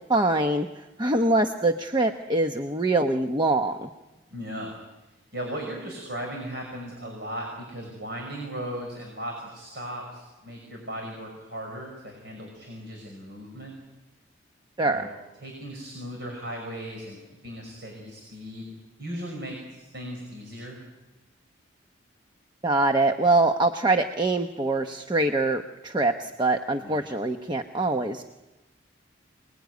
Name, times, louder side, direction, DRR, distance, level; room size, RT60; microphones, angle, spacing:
voice 1, 0.1-0.7 1.0-3.9 14.8-15.1 22.6-28.3, right 2 dB, 25° right, 6 dB, 0.9 m, -24 dB
voice 2, 4.3-4.7 5.3-13.7 14.8-15.1 15.4-17.2 17.4-18.7 19.0-20.8 26.8-27.0, right 1 dB, 60° right, 1 dB, 5.8 m, -37 dB
28.0 x 20.5 x 9.4 m, 1.1 s
head